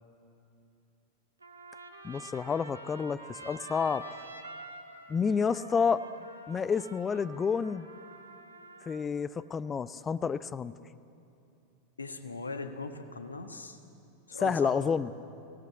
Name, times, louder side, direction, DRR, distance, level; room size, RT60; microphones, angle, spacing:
Trumpet, 1.4-9.1, right 2 dB, 85° right, 1.8 m, -47 dB
voice 1, 2.0-4.0 5.1-6.0 6.5-7.9 8.9-10.7 14.3-15.1, left 6 dB, 20° left, 16 dB, 0.6 m, -29 dB
voice 2, 12.0-13.8 14.3-14.9, left 3 dB, 80° left, 8 dB, 1.4 m, -39 dB
23.0 x 17.5 x 8.5 m, 2.7 s
figure-of-eight pair, 90°, 0 cm